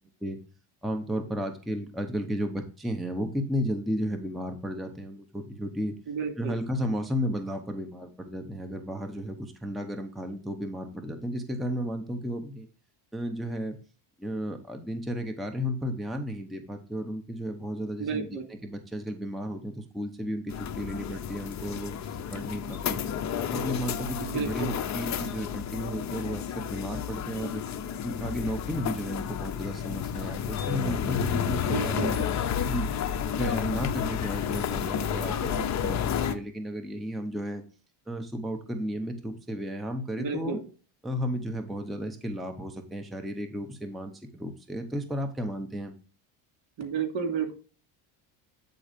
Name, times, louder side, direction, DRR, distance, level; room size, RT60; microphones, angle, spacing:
voice 1, 0.8-6.0 6.4-12.7 13.1-13.8 14.2-22.0 22.3-23.0 23.5-27.6 28.0-32.2 32.6-32.9 33.4-37.6 38.1-40.6 41.0-45.9, equal, ahead, 4 dB, 0.7 m, -33 dB
voice 2, 6.1-6.5 18.0-18.4 24.2-24.7 31.6-32.1 40.2-40.6 46.8-47.5, right 5 dB, 70° right, 5 dB, 2.7 m, -31 dB
sound 1, 20.5-36.3, left 8 dB, 35° left, 0.7 m, -31 dB
8.5 x 3.9 x 5.1 m, 0.36 s
cardioid pair, 140°, 48 cm